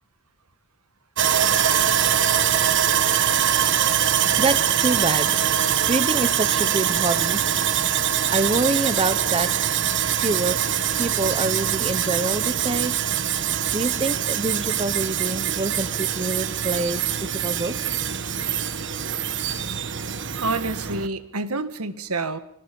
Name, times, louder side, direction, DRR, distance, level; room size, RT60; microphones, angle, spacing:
Sawing, 1.2-21.1, right 9 dB, 55° right, 1.4 m, -23 dB
voice 1, 4.4-5.4 5.9-7.4 8.3-9.5 10.2-10.6 11.0-13.0 13.7-17.9, right 2 dB, 25° right, 13 dB, 0.9 m, -26 dB
voice 2, 20.4-22.4, right 3 dB, 80° right, 11 dB, 1.7 m, -28 dB
26.0 x 21.5 x 5.4 m, 0.77 s
head